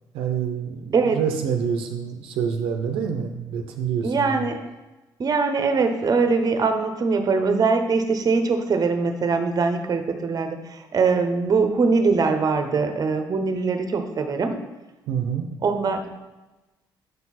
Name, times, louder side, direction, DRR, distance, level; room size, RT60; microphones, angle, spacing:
voice 1, 0.1-4.5 15.1-15.5, right 7 dB, 90° right, 4 dB, 0.6 m, -27 dB
voice 2, 4.0-4.6 5.2-14.6 15.6-16.1, right 4 dB, 45° right, 7 dB, 0.8 m, -22 dB
6.7 x 4.5 x 4.1 m, 1.1 s
cardioid pair, 75°, 9 cm